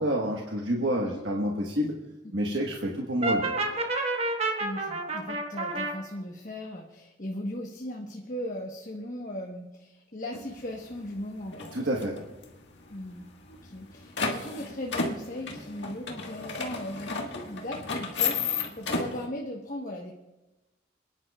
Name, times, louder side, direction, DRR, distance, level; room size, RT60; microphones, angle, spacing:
voice 1, 0.0-1.9 2.3-3.5 11.7-12.2, equal, 75° right, -1 dB, 1.3 m, -28 dB
Brass instrument, 3.2-5.9, right 2 dB, 35° right, 1.3 m, -29 dB
voice 2, 4.6-11.7 12.9-20.1, left 1 dB, 45° left, -1 dB, 1.1 m, -38 dB
sound 1, 10.3-10.4 10.9-11.2 11.5-12.4 12.7-12.8 13.0-13.1 13.6-19.3, left 4 dB, 75° left, 1.7 m, -32 dB
27.5 x 10.5 x 2.4 m, 1.1 s
head